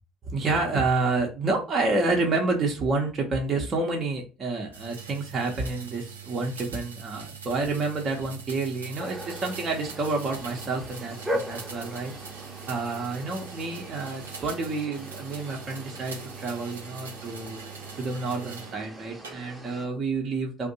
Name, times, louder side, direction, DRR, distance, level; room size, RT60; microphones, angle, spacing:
voice 1, 0.3-12.1 12.7-17.6 18.0-20.7, right 3 dB, 40° right, 0 dB, 0.7 m, -29 dB
sound 1, 4.7-18.8 19.2-19.8, right 6 dB, 85° right, 0.5 m, -43 dB
sound 2, 9.0-19.9, equal, 10° right, 0.8 m, -40 dB
2.5 x 2.1 x 2.7 m, 0.33 s
figure-of-eight pair, 55°, 0 cm